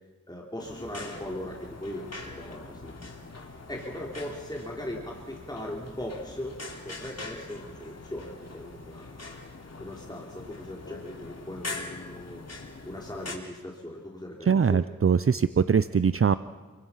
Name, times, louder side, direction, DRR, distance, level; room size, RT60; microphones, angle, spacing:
voice 1, 0.3-2.1 2.4-2.9 3.7-6.6 6.8-9.4 9.8-12.4 12.8-14.8, left 1 dB, 15° left, -2 dB, 3.5 m, -39 dB
sound 1, 0.6-13.4, left 3 dB, 60° left, 3.2 m, -42 dB
voice 2, 14.5-16.4, right 6 dB, 50° right, 13 dB, 0.6 m, -22 dB
29.0 x 24.0 x 5.7 m, 1.5 s
wide cardioid pair, 70°, 29 cm